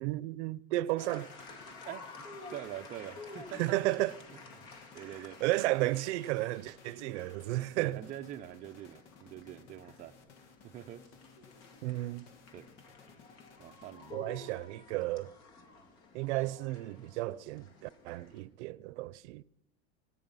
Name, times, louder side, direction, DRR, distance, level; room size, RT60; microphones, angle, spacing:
voice 1, 0.0-1.3 3.6-4.2 5.4-8.0 11.8-12.3 14.1-15.3 16.1-19.4, right 18 dB, 75° right, 0.6 m, -33 dB
sound 1, 0.9-14.5, left 5 dB, 80° left, 2.1 m, -59 dB
sound 2, 1.0-18.4, left 3 dB, 50° left, 2.4 m, -52 dB
voice 2, 1.9-3.8 4.3-4.7 4.9-5.4 7.8-10.1 10.6-11.0 12.5-12.7 13.6-14.4, right 12 dB, 25° right, 0.5 m, -45 dB
26.0 x 9.8 x 5.5 m
supercardioid pair, 165°, 35 cm